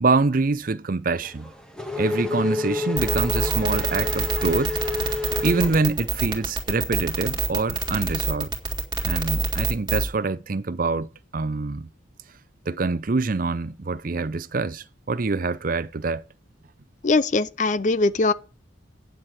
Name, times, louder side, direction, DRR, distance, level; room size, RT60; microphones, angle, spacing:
voice 1, 0.0-1.5 2.0-4.7 5.4-8.5 9.0-11.9 12.7-16.2, right 3 dB, 45° right, 0.5 m, -25 dB
Race car auto racing / Accelerating revving vroom, 1.2-6.4, left 3 dB, 5° left, 1.6 m, -30 dB
sound 1, 3.0-10.1, right 4 dB, 20° right, 2.3 m, -25 dB
voice 2, 17.0-18.3, left 3 dB, 40° left, 0.5 m, -21 dB
9.3 x 7.3 x 8.0 m
head